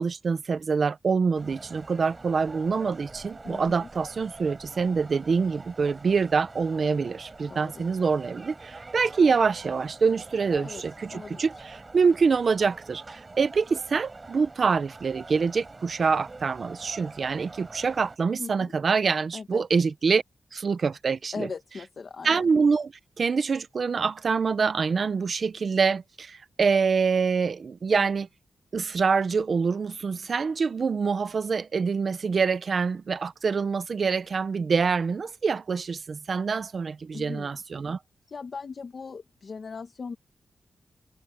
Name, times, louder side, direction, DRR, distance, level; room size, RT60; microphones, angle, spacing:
voice 1, 0.0-20.2 20.5-21.5 22.2-28.3 28.7-38.0, right 5 dB, 50° right, 0.9 m, -25 dB
sound 1, 1.4-18.2, right 3 dB, 25° right, 5.6 m, -45 dB
voice 2, 3.4-3.9 7.5-7.9 10.5-10.8 11.1-11.5 18.4-18.7 19.3-19.6 21.3-22.5 37.1-37.5 38.3-40.2, left 5 dB, 45° left, 1.4 m, -39 dB
wide cardioid pair, 150°, 0 cm